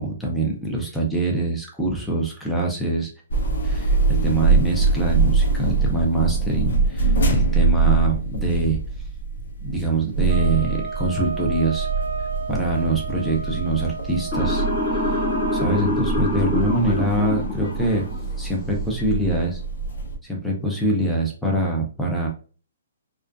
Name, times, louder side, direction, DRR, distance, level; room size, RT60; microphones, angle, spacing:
voice 1, 0.0-3.1 3.6-8.8 9.6-11.9 12.5-14.7 14.9-15.2 15.5-18.0 18.4-19.6 20.2-22.3, right 2 dB, ahead, -3 dB, 0.5 m, -24 dB
sound 1, 3.3-20.2, right 4 dB, 70° left, 0.6 m, -24 dB
sound 2, 10.3-15.7, right 4 dB, 60° right, 0.4 m, -32 dB
Motor vehicle (road) / Siren, 14.3-18.4, left 2 dB, 25° left, 1.1 m, -26 dB
2.4 x 2.2 x 2.3 m, 0.38 s
hypercardioid pair, 160°, 0 cm